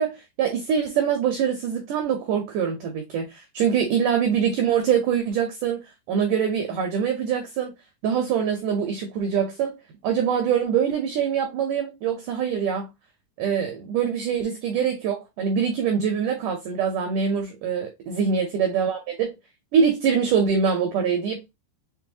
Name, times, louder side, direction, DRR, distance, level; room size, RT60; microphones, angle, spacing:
voice 1, 0.0-5.8 6.1-7.7 8.0-9.8 10.0-12.9 13.4-19.4 19.7-21.4, right 7 dB, 85° right, 1.8 m, -24 dB
6.4 x 2.3 x 2.7 m
omnidirectional pair, 4.6 m